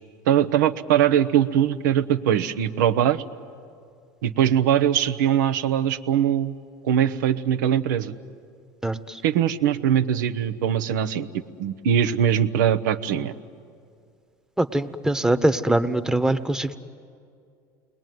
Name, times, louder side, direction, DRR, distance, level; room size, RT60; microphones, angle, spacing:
voice 1, 0.3-3.2 4.2-6.5 6.8-8.1 9.2-11.3 11.6-13.3, right 9 dB, 85° right, 12 dB, 0.9 m, -21 dB
voice 2, 8.8-9.2 14.6-16.8, right 1 dB, 5° right, 10 dB, 1.0 m, -23 dB
29.0 x 21.5 x 9.4 m, 2.3 s
supercardioid pair, 100°, 10 cm